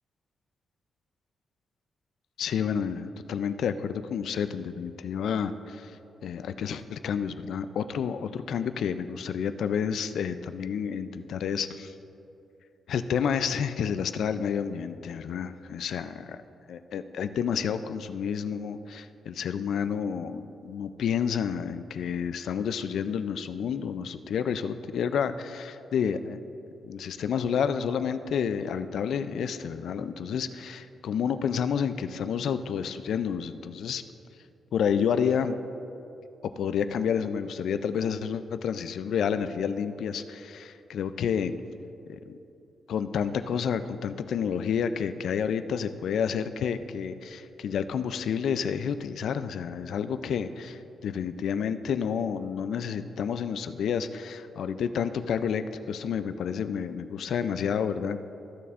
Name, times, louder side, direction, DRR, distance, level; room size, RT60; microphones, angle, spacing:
voice 1, 2.4-6.0 6.2-11.9 12.9-16.4 16.7-26.4 26.8-34.0 34.7-35.6 36.4-41.5 42.1-42.4 42.9-58.2, left 7 dB, 70° left, 11 dB, 0.3 m, -30 dB
14.5 x 6.8 x 2.5 m, 2.8 s
wide cardioid pair, 150°, 0 cm